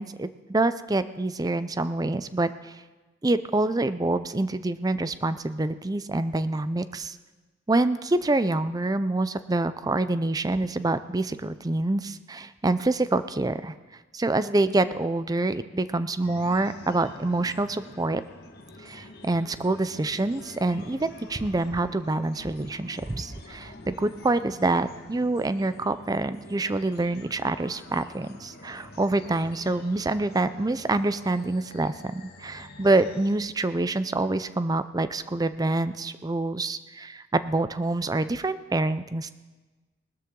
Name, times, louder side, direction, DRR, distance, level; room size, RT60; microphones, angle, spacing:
voice 1, 0.0-2.8 3.2-7.2 7.7-13.7 14.1-18.2 18.8-39.3, right 2 dB, 20° right, 13 dB, 0.5 m, -26 dB
sound 1, 16.2-33.4, left 2 dB, 55° left, 1.7 m, -47 dB
19.5 x 13.0 x 3.8 m, 1.2 s
head